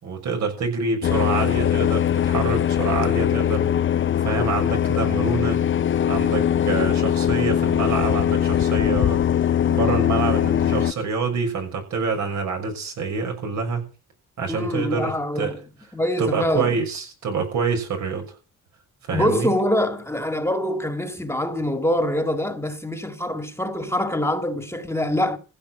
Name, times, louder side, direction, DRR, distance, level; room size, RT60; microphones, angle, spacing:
voice 1, 0.0-3.7 4.2-5.6 6.1-9.2 9.7-13.8 14.4-15.5 16.2-18.3 19.1-19.5, right 4 dB, 70° right, 6.3 m, -26 dB
sound 1, 1.0-10.9, left 9 dB, 40° left, 0.6 m, -21 dB
voice 2, 14.5-15.6 15.9-16.8 19.1-25.4, left 1 dB, 10° left, 1.8 m, -24 dB
15.5 x 6.9 x 9.2 m
cardioid pair, 90°, 30 cm